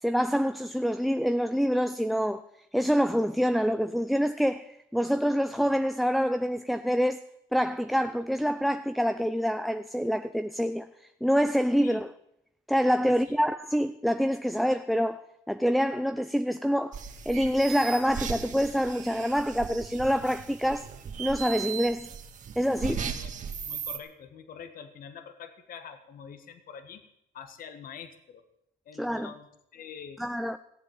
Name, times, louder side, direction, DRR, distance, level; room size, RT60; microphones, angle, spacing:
voice 1, 0.0-2.4 2.7-7.2 7.5-12.1 12.7-15.2 15.5-17.0 17.3-20.9 21.2-22.1 22.6-23.0 29.0-29.3 30.2-30.6, equal, ahead, 0.5 m, -26 dB
voice 2, 13.1-13.4 22.9-23.4 23.6-27.0 27.3-28.4 28.8-30.2, left 7 dB, 55° left, 1.5 m, -45 dB
sound 1, 16.9-24.0, right 7 dB, 45° right, 1.9 m, -37 dB
17.0 x 7.9 x 8.8 m
cardioid pair, 110°, 17 cm